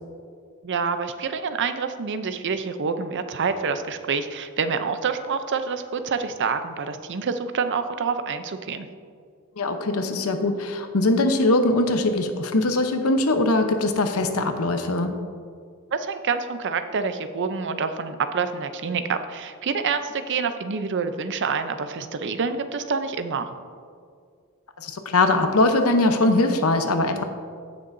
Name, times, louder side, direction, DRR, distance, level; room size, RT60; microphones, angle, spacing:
voice 1, 0.6-8.9 15.9-23.5, right 5 dB, 55° right, 9 dB, 0.6 m, -27 dB
voice 2, 9.6-15.1 24.8-27.2, left 2 dB, 70° left, 7 dB, 0.9 m, -21 dB
16.5 x 6.7 x 2.6 m, 2.2 s
head